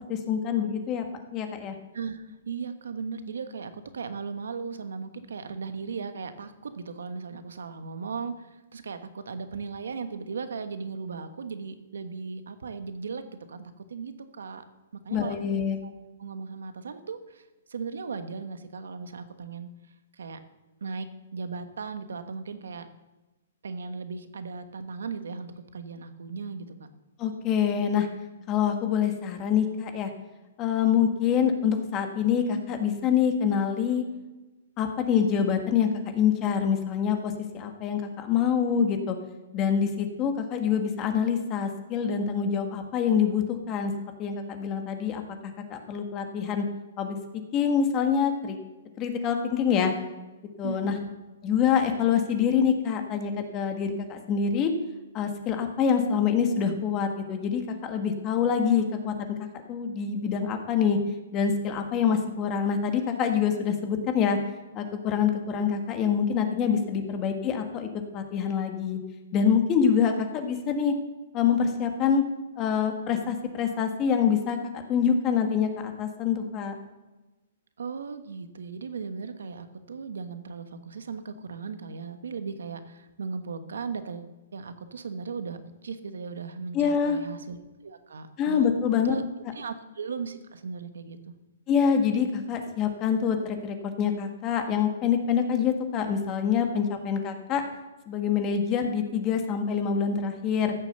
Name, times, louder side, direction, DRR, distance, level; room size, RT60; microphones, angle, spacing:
voice 1, 0.1-1.0 1.3-1.8 15.1-15.8 27.2-28.1 28.5-30.1 30.6-34.0 34.8-39.2 39.5-43.9 44.2-46.7 47.0-47.2 47.5-48.6 49.0-49.9 50.6-50.9 51.4-54.7 55.1-61.0 61.3-64.4 64.7-67.9 68.1-69.0 69.3-70.9 71.3-72.2 72.6-74.6 74.9-76.7 86.7-87.2 88.4-89.1 91.7-97.6 98.1-100.7, left 7 dB, 25° left, 5 dB, 1.5 m, -25 dB
voice 2, 1.9-14.6 14.9-15.3 15.8-15.9 16.2-19.7 20.1-20.4 20.8-22.9 23.6-26.9 50.6-51.0 67.1-67.2 77.8-87.6 87.8-88.6 89.0-89.2 89.5-91.3, right 5 dB, 90° right, 10 dB, 1.2 m, -37 dB
14.5 x 7.1 x 6.8 m, 1.1 s
hypercardioid pair, 155°, 0 cm